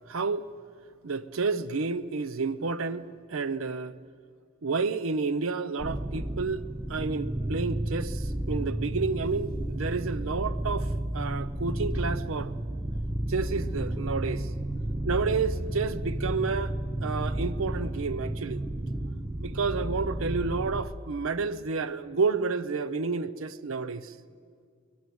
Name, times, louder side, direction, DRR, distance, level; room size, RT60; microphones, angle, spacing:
voice 1, 0.1-0.5 1.0-3.9 4.6-6.6 6.9-12.5 13.3-14.5 15.1-16.7 17.0-18.6 19.4-24.1, right 4 dB, 60° right, 0.6 m, -30 dB
sound 1, 5.8-20.8, right 1 dB, 10° right, 0.7 m, -32 dB
22.5 x 19.0 x 9.4 m
head